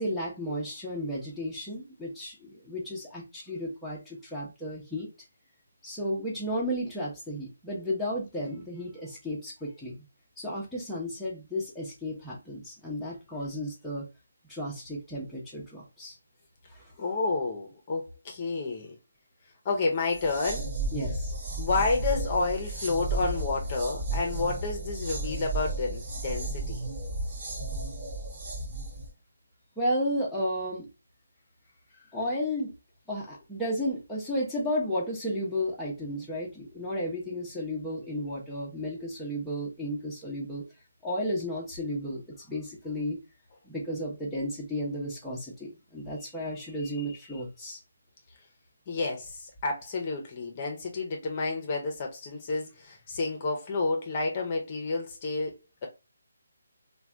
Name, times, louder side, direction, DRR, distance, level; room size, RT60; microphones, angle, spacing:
voice 1, 0.0-5.1 5.8-10.0 10.4-14.1 14.5-16.1 16.7-16.8 20.9-21.3 29.8-30.9 32.1-32.7 33.1-40.6 41.0-43.2 43.6-47.8, equal, ahead, 0.8 m, -33 dB
voice 2, 17.0-18.9 19.6-20.7 21.6-26.8 32.0-32.1 48.9-55.6, left 3 dB, 30° left, 0.7 m, -30 dB
sound 1, 20.0-29.1, right 2 dB, 35° right, 1.3 m, -33 dB
3.2 x 2.2 x 2.4 m
figure-of-eight pair, 150°, 0 cm